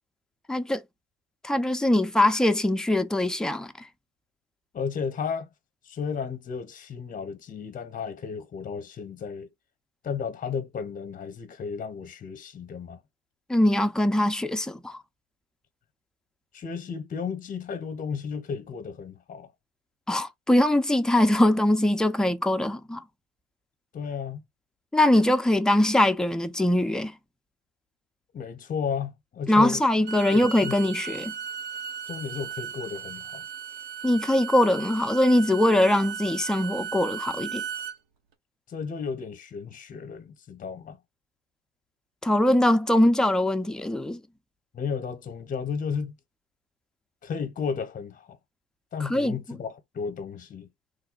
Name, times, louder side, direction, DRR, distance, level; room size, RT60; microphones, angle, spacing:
voice 1, 0.5-0.8 1.4-3.9 13.5-15.0 20.1-23.0 24.9-27.1 29.5-31.3 34.0-37.6 42.2-44.2 49.0-49.4, left 1 dB, ahead, 0.4 m, -22 dB
voice 2, 4.7-5.5 5.8-9.5 10.0-13.0 16.5-19.5 23.9-24.4 28.3-29.8 30.3-30.8 32.1-33.4 38.7-41.0 44.7-46.2 47.2-48.4 48.9-50.7, left 6 dB, 25° left, 0.8 m, -33 dB
Bowed string instrument, 29.9-38.0, right 8 dB, 80° right, 1.0 m, -36 dB
3.2 x 2.1 x 3.8 m
supercardioid pair, 90°, 32 cm